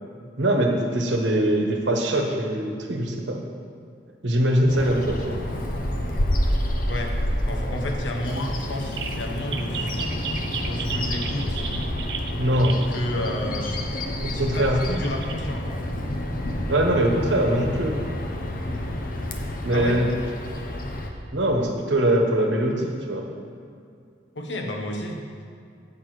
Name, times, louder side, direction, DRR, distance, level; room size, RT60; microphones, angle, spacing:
voice 1, 0.4-3.4 4.2-5.4 12.4-12.8 14.2-14.8 16.7-18.0 19.6-20.1 21.3-23.3, right 1 dB, 80° right, 2 dB, 1.1 m, -22 dB
Bird vocalization bird call bird song, 4.7-21.1, left 1 dB, 50° left, 0.8 m, -29 dB
voice 2, 6.8-7.2 7.5-10.2 10.6-11.6 12.9-13.8 14.3-15.8 19.7-20.0 24.3-25.2, left 1 dB, 85° left, 1 dB, 1.1 m, -31 dB
sound 1, 9.0-9.1 9.5-12.9 14.4-14.5 14.9-15.3, right 6 dB, 65° right, 0.6 m, -33 dB
8.2 x 6.0 x 4.8 m, 2.4 s
head